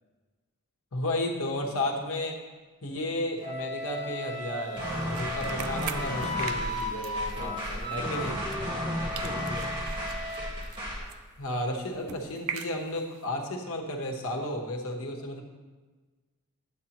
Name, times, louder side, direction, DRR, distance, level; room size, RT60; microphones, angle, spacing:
voice 1, 0.9-2.4 2.8-8.3 11.4-15.4, left 1 dB, 65° left, 1 dB, 1.0 m, -33 dB
Wind instrument woodwind instrument, 3.4-10.5, left 1 dB, 40° right, 1.5 m, -37 dB
sound 1, 4.7-8.9 9.1-13.2, right 8 dB, 75° right, 0.4 m, -43 dB
sound 2, 4.8-11.1, equal, 25° right, 1.4 m, -34 dB
voice 2, 7.4-9.9, left 1 dB, 5° left, -1 dB, 0.5 m, -42 dB
8.4 x 8.1 x 2.9 m, 1.3 s
head